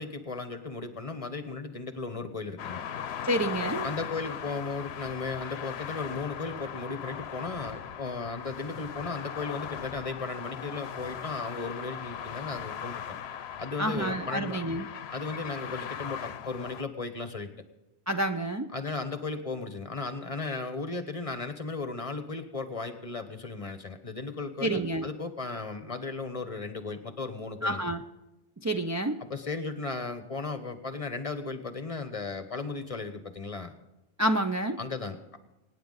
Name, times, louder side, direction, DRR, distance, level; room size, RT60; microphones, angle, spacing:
voice 1, 0.0-2.8 3.8-13.2 13.6-14.6 15.1-17.5 18.7-27.8 29.2-33.8 34.8-35.2, left 3 dB, 35° left, 9 dB, 1.1 m, -36 dB
sound 1, 2.6-16.8, left 8 dB, 80° left, 0.9 m, -39 dB
voice 2, 3.2-3.9 13.8-14.9 18.1-18.7 24.6-25.1 27.6-28.0 28.6-29.2 34.2-34.8, right 1 dB, 25° right, 5 dB, 0.4 m, -28 dB
24.5 x 9.7 x 4.0 m, 1.0 s
omnidirectional pair, 1.1 m